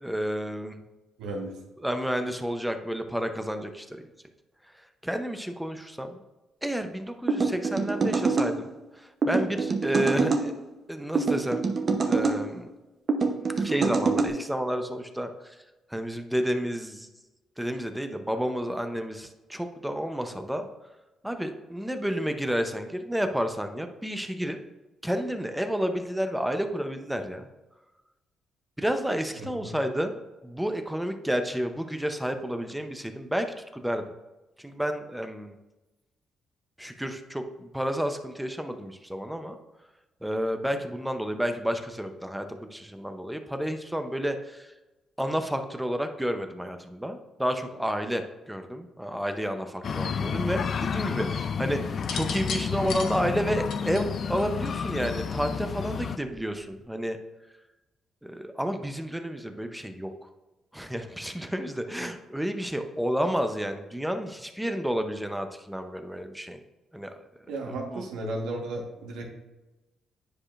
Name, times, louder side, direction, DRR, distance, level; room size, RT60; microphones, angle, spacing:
voice 1, 0.0-0.8 1.8-4.0 5.0-6.2 6.6-8.7 9.0-10.5 10.9-11.7 12.1-12.7 13.6-15.6 15.9-17.1 17.6-20.7 21.2-24.6 25.0-27.5 28.8-30.2 30.4-33.5 33.7-34.0 34.6-35.5 36.8-39.6 40.2-44.7 45.2-57.2 58.2-60.1 60.7-66.6 66.9-67.1 67.7-68.0, equal, 5° right, 7 dB, 0.6 m, -30 dB
voice 2, 1.2-1.6 29.3-29.7 67.5-69.2, right 2 dB, 85° right, 0 dB, 1.3 m, -34 dB
sound 1, 7.3-8.5 9.2-10.4 11.1-12.4 13.1-14.3, right 4 dB, 45° right, 0.8 m, -25 dB
sound 2, 49.8-56.2, left 6 dB, 50° left, 0.3 m, -30 dB
sound 3, 51.9-55.1 56.2-56.6, left 5 dB, 70° left, 0.8 m, -36 dB
9.8 x 4.9 x 2.5 m, 1.1 s
cardioid pair, 90°, 0 cm